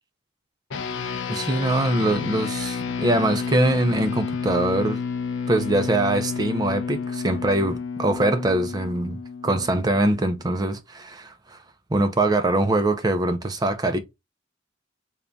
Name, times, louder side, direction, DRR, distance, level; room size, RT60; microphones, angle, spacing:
sound 1, 0.7-10.3, left 5 dB, 75° left, 0.5 m, -30 dB
voice 1, 1.3-5.0 5.5-11.6 11.9-14.0, right 2 dB, 20° right, 0.4 m, -23 dB
3.6 x 2.3 x 3.6 m
head